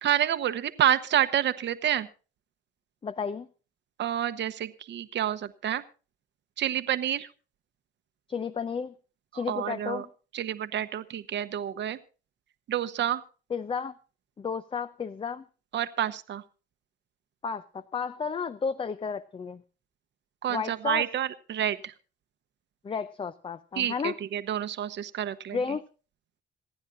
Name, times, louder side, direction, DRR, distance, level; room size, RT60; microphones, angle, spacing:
voice 1, 0.0-2.1 4.0-5.8 6.6-7.3 9.3-10.0 10.3-12.0 12.7-13.2 15.7-16.4 20.4-21.9 23.8-25.6, right 10 dB, 65° right, 12 dB, 0.9 m, -28 dB
voice 2, 3.0-3.5 8.3-8.9 9.3-10.1 13.5-13.9 14.4-15.4 17.4-19.6 20.5-21.1 22.8-24.1 25.5-25.8, left 5 dB, 25° left, 14 dB, 0.5 m, -32 dB
26.5 x 9.8 x 2.6 m, 0.35 s
cardioid pair, 90°, 20 cm